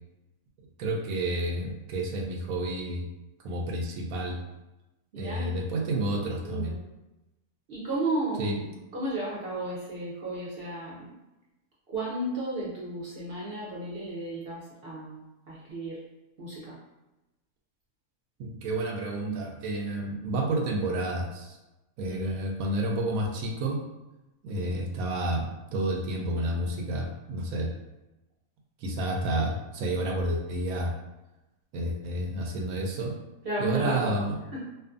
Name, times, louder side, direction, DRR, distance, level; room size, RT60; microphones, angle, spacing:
voice 1, 0.8-3.1 3.4-4.4 5.1-6.7 8.4-8.6 18.4-21.6 22.0-23.8 24.4-27.7 28.8-30.9 31.7-33.1 33.6-34.4, right 1 dB, 80° right, 1 dB, 1.0 m, -30 dB
voice 2, 5.1-5.5 6.4-6.8 7.7-11.1 11.9-16.0 16.4-16.8 22.1-22.3 33.4-34.2 34.5-34.6, right 2 dB, 55° right, -7 dB, 0.7 m, -33 dB
2.5 x 2.4 x 2.4 m, 0.99 s
omnidirectional pair, 1.5 m